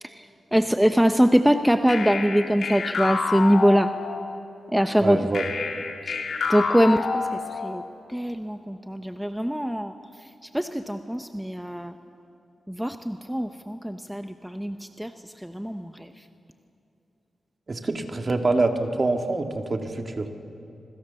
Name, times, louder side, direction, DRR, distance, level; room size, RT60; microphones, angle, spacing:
voice 1, 0.0-3.9 4.7-5.3 6.0-7.8 8.1-12.0 12.7-16.3, equal, 5° right, 8 dB, 0.9 m, -23 dB
sound 1, 1.9-4.4 5.3-7.9, left 4 dB, 75° left, 3.1 m, -29 dB
voice 2, 5.0-5.4 17.7-20.3, right 3 dB, 40° right, 5 dB, 2.2 m, -25 dB
26.5 x 24.0 x 7.1 m, 2.8 s
cardioid pair, 80°, 0 cm